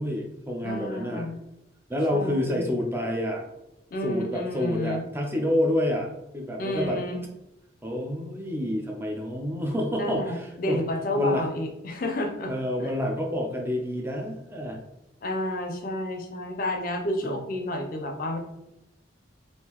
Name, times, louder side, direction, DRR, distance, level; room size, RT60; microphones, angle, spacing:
voice 1, 0.0-1.3 1.9-3.4 4.0-7.0 7.8-10.8 11.2-11.4 12.5-14.8 17.2-17.3, left 1 dB, 10° right, 1 dB, 0.4 m, -28 dB
voice 2, 0.6-1.4 2.1-2.7 3.9-5.0 6.6-7.2 10.0-12.5 12.8-13.0 15.2-18.4, left 1 dB, 45° left, 4 dB, 0.5 m, -30 dB
3.7 x 2.6 x 2.9 m, 0.89 s
head